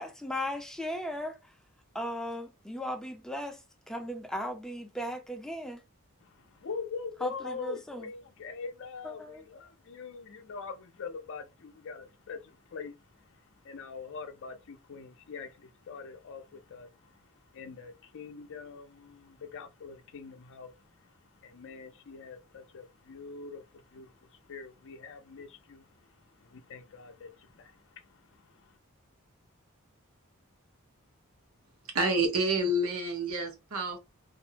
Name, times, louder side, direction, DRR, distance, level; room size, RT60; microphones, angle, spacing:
voice 1, 0.0-1.4 1.9-3.6 3.9-5.8 7.2-8.1 9.0-9.5, left 1 dB, 5° left, 0.5 m, -37 dB
voice 2, 6.6-12.9 13.6-16.4 16.7-16.9 17.5-20.7 21.4-23.6 23.9-24.1 24.5-25.8 26.5-27.3 27.6-27.7, left 5 dB, 60° left, 0.5 m, -43 dB
voice 3, 31.9-34.0, right 2 dB, 75° right, 0.8 m, -28 dB
2.5 x 2.0 x 2.6 m
head